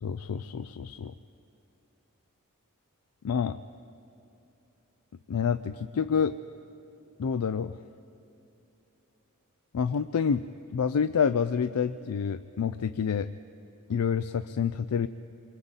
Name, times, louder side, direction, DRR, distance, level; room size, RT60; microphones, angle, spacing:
voice 1, 0.0-1.1 3.2-3.6 5.3-6.4 7.2-7.8 9.7-13.3 13.9-15.1, left 6 dB, 85° left, 11 dB, 0.4 m, -28 dB
27.0 x 24.0 x 4.1 m, 2.9 s
head